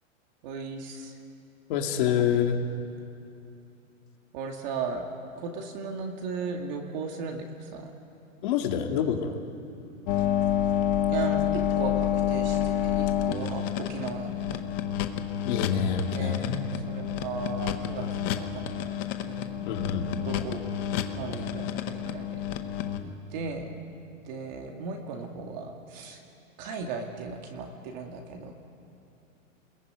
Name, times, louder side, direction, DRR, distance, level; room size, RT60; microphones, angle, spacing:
voice 1, 0.4-1.1 4.3-5.0 5.4-7.9 11.1-14.6 16.1-16.6 16.9-19.0 19.2-19.7 20.2-20.6 21.2-22.4 23.3-23.8 24.3-26.2 26.6-28.5, right 4 dB, 35° right, 2 dB, 2.3 m, -36 dB
voice 2, 1.7-2.6 8.4-9.4 15.4-16.9 19.6-20.1, left 8 dB, 40° left, 3 dB, 2.6 m, -27 dB
sound 1, 10.1-23.0, left 10 dB, 15° left, 0.7 m, -29 dB
29.5 x 21.0 x 9.5 m, 2.7 s
supercardioid pair, 170°, 40 cm